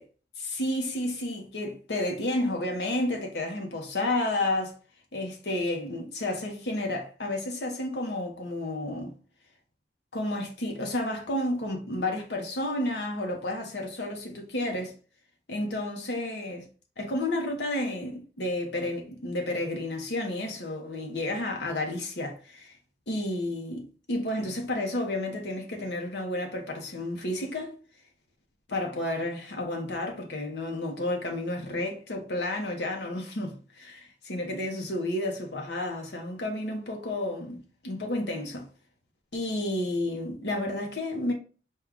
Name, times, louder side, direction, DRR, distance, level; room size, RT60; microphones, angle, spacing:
voice 1, 0.4-4.7 5.1-9.1 10.1-14.9 15.5-16.6 17.0-22.7 23.1-27.8 28.7-38.7 39.3-41.3, left 1 dB, 75° left, 0.9 m, -31 dB
4.5 x 2.3 x 3.6 m
head